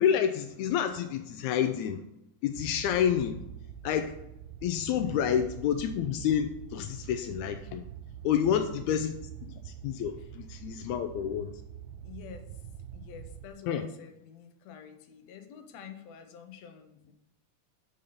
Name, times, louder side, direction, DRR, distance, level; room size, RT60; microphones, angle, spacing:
voice 1, 0.0-2.0 2.4-3.4 3.8-4.1 4.6-7.8 8.2-9.1 9.5-11.5 13.7-13.9, left 9 dB, 85° left, 8 dB, 1.7 m, -29 dB
sound 1, 2.5-13.5, right 9 dB, 85° right, 2.3 m, -45 dB
voice 2, 8.3-8.7 12.0-12.6 12.9-17.1, left 7 dB, 70° left, 6 dB, 1.8 m, -48 dB
7.2 x 5.4 x 5.2 m, 0.84 s
omnidirectional pair, 3.8 m